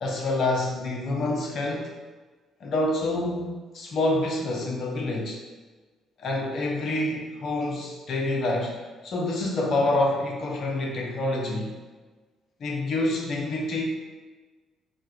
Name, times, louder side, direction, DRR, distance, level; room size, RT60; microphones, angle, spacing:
voice 1, 0.0-1.9 2.6-5.4 6.2-11.7 12.6-13.8, left 2 dB, 55° left, -1 dB, 0.7 m, -27 dB
4.6 x 2.2 x 2.3 m, 1.3 s
hypercardioid pair, 50°, 0 cm